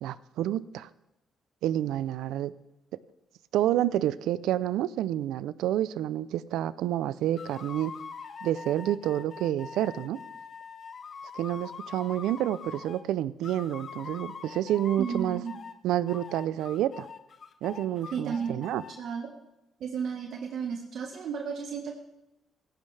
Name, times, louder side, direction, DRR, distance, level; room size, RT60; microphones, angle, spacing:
voice 1, 0.0-0.9 1.6-2.5 3.5-7.9 8.4-10.2 11.3-15.4 15.8-17.1 17.6-18.8, right 12 dB, 90° right, 17 dB, 0.5 m, -29 dB
sound 1, 7.4-13.0 13.4-15.8 16.1-19.0, left 6 dB, 45° left, 1.1 m, -43 dB
voice 2, 15.0-15.6 18.1-18.6 19.0-19.3 19.8-22.0, right 6 dB, 70° right, 2 dB, 1.4 m, -33 dB
16.0 x 14.0 x 3.4 m, 0.92 s
cardioid pair, 90°, 0 cm